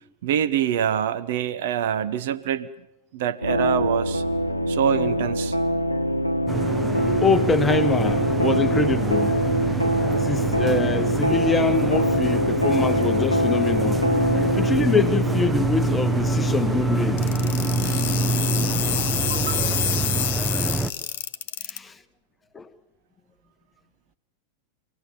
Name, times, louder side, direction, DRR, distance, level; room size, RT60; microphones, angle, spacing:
voice 1, 0.2-2.7 3.1-4.2 4.7-5.6 19.0-19.8, right 9 dB, 55° right, 0.9 m, -25 dB
sound 1, 3.4-20.2, equal, 85° left, 0.9 m, -25 dB
sound 2, 6.5-20.9, right 2 dB, 10° right, 0.8 m, -26 dB
voice 2, 7.2-9.5 10.2-14.0 14.6-17.3 21.7-21.9 22.5-22.7, left 4 dB, 15° left, 1.1 m, -24 dB
sound 3, 17.2-21.8, left 11 dB, 55° left, 1.0 m, -27 dB
26.0 x 17.5 x 7.3 m
figure-of-eight pair, 90°, 0 cm